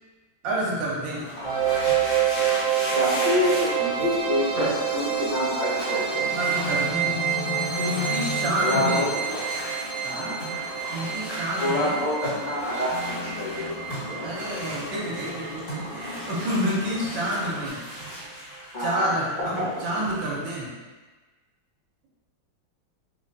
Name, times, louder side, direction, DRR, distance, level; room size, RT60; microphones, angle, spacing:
voice 1, 0.4-1.2 6.3-7.2 7.8-9.1 10.0-10.4 10.9-12.0 14.2-17.8 18.8-20.7, equal, 70° right, -4 dB, 1.5 m, -29 dB
sound 1, 1.1-17.7, left 4 dB, 80° left, 1.4 m, -38 dB
sound 2, 1.2-5.2 5.5-20.3, equal, 55° left, 2.0 m, -36 dB
sound 3, 1.4-16.4, right 9 dB, 50° right, 1.2 m, -28 dB
voice 2, 2.9-4.7 4.9-6.3 8.6-9.1 10.1-10.4 11.6-13.7 18.7-19.0, left 2 dB, 35° left, -11 dB, 0.6 m, -27 dB
3.8 x 3.0 x 2.6 m, 1.3 s
omnidirectional pair, 2.2 m